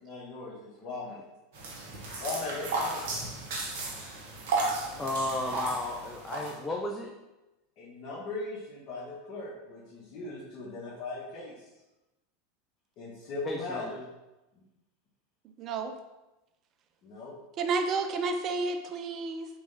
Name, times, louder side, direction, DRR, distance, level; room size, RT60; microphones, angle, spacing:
voice 1, 0.0-1.2 2.0-3.2 7.8-11.5 13.0-14.0 17.0-17.3, left 3 dB, 50° left, -6 dB, 1.1 m, -39 dB
sound 1, 1.5-6.5, right 3 dB, 70° right, 1.0 m, -34 dB
voice 2, 5.0-7.1 13.5-14.0, left 2 dB, 20° left, 0 dB, 0.5 m, -33 dB
voice 3, 15.6-15.9 17.6-19.5, right 4 dB, 40° right, 6 dB, 0.5 m, -30 dB
3.4 x 3.2 x 3.9 m, 1.0 s
hypercardioid pair, 95°, 0 cm